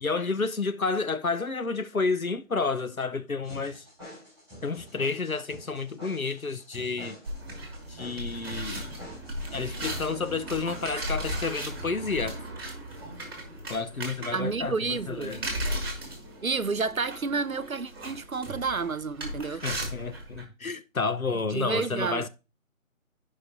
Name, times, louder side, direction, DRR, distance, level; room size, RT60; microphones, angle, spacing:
voice 1, 0.0-3.8 4.6-7.2 7.9-8.9 9.5-12.4 13.7-15.4 19.5-22.3, left 4 dB, 85° left, 1.0 m, -30 dB
sound 1, 3.4-11.4, left 1 dB, 5° left, 5.5 m, -48 dB
sound 2, 7.2-20.4, right 1 dB, 15° right, 1.7 m, -36 dB
voice 2, 14.3-15.3 16.4-19.6 21.5-22.2, right 4 dB, 85° right, 0.8 m, -30 dB
14.5 x 5.3 x 2.9 m
figure-of-eight pair, 155°, 41 cm